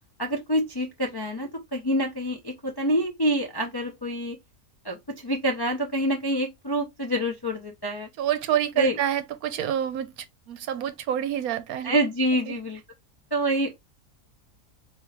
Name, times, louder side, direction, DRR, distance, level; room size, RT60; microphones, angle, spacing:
voice 1, 0.2-4.4 4.8-8.1 8.8-9.0 11.8-12.8 13.3-13.8, equal, 35° left, 0.4 m, -26 dB
voice 2, 8.2-12.0 12.5-12.6, right 10 dB, 75° right, 1.1 m, -28 dB
4.5 x 3.0 x 2.3 m
omnidirectional pair, 1.6 m